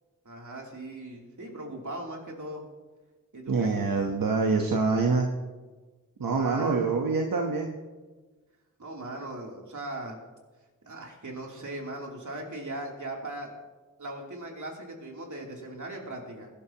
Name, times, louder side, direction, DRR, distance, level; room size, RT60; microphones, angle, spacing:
voice 1, 0.2-2.6 3.3-3.8 6.2-6.9 8.8-10.2 10.8-13.5 14.0-16.5, right 1 dB, 60° right, -1 dB, 3.2 m, -39 dB
voice 2, 3.5-5.3 6.2-7.7, right 4 dB, 90° right, 1 dB, 1.2 m, -25 dB
21.5 x 11.5 x 3.0 m, 1.3 s
wide cardioid pair, 75°, 33 cm